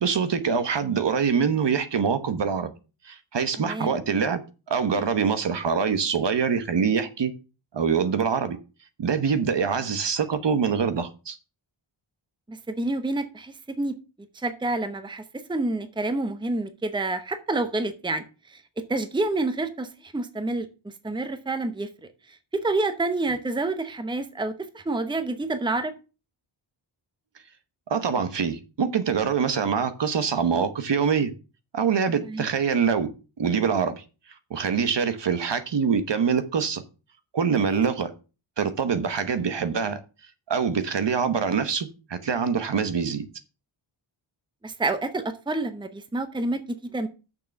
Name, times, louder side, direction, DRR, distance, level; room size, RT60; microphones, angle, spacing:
voice 1, 0.0-2.7 3.0-4.4 4.7-7.3 7.7-8.6 9.0-11.4 27.9-31.3 31.7-33.1 33.4-34.0 34.5-36.8 37.3-38.1 38.6-40.0 40.5-43.2, right 6 dB, 60° right, 1.1 m, -24 dB
voice 2, 3.6-3.9 12.5-13.9 14.3-15.2 15.5-18.2 18.5-18.6 18.9-20.7 21.0-21.9 22.5-25.9 32.3-32.5 37.6-37.8 44.6-47.1, right 2 dB, 10° right, 0.8 m, -28 dB
6.7 x 6.0 x 7.0 m
wide cardioid pair, 170°, 48 cm